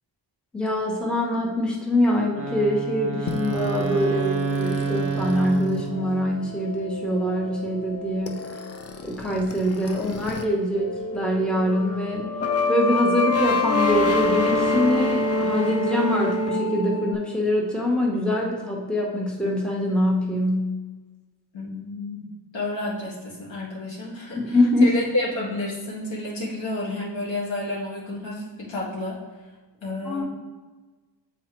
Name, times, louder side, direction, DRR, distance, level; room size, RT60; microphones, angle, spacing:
voice 1, 0.5-8.6 9.0-12.3 12.7-20.7 24.4-24.9 30.0-30.2, left 1 dB, ahead, -2 dB, 0.9 m, -24 dB
Wind instrument woodwind instrument, 2.3-6.5, right 4 dB, 30° right, 0.8 m, -29 dB
sound 1, 3.3-10.4 10.7-17.1, left 2 dB, 35° left, 0.4 m, -27 dB
voice 2, 21.5-22.3 22.5-29.2 29.8-30.2, left 2 dB, 85° left, -5 dB, 1.8 m, -30 dB
7.6 x 4.2 x 3.0 m, 1.3 s
wide cardioid pair, 125°, 45 cm